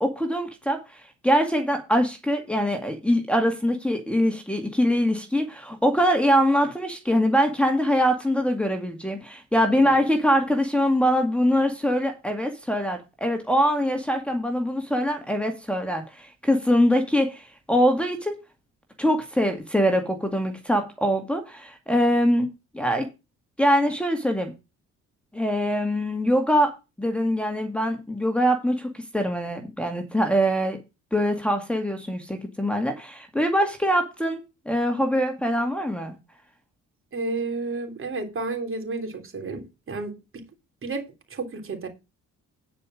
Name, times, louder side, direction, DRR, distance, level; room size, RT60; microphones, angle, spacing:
voice 1, 0.0-18.4 19.0-22.5 22.7-23.1 23.6-24.5 25.3-26.7 27.0-30.8 31.1-34.4 34.7-36.1, equal, 5° left, 2.1 m, -23 dB
voice 2, 37.1-40.2 40.8-41.9, right 3 dB, 45° right, 3.2 m, -31 dB
9.6 x 5.2 x 6.3 m
cardioid pair, 90°, 30 cm